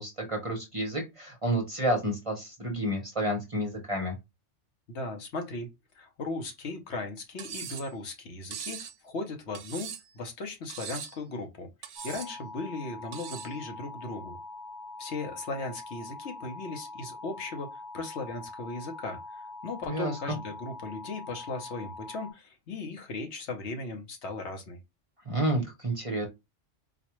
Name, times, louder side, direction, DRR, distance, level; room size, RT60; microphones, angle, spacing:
voice 1, 0.0-4.2 19.9-20.4 25.3-26.3, right 1 dB, 30° right, 0.8 m, -30 dB
voice 2, 4.9-5.7 5.9-9.9 10.1-14.4 15.0-24.8, left 3 dB, 70° left, 1.1 m, -37 dB
Cutlery silverware, 7.4-7.9 8.5-8.9 9.5-10.2 10.7-11.2 11.8-12.3 13.1-13.5, right 8 dB, 65° right, 0.8 m, -40 dB
sound 1, 12.0-22.3, left 2 dB, 45° left, 0.8 m, -44 dB
4.1 x 2.3 x 3.0 m
omnidirectional pair, 1.2 m